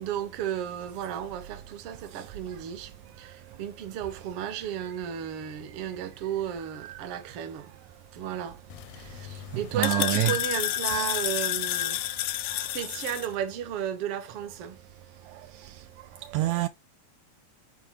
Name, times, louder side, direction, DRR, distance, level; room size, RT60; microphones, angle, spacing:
voice 1, 0.0-2.9 3.2-7.7 8.1-8.6 8.9-12.3 12.6-14.8, right 9 dB, 60° right, 1.8 m, -34 dB
sound 1, 8.7-13.3, left 13 dB, 80° left, 1.6 m, -30 dB
voice 2, 9.7-10.3 10.9-11.1 16.3-16.7, right 15 dB, 80° right, 1.8 m, -26 dB
8.4 x 4.6 x 2.9 m
omnidirectional pair, 3.3 m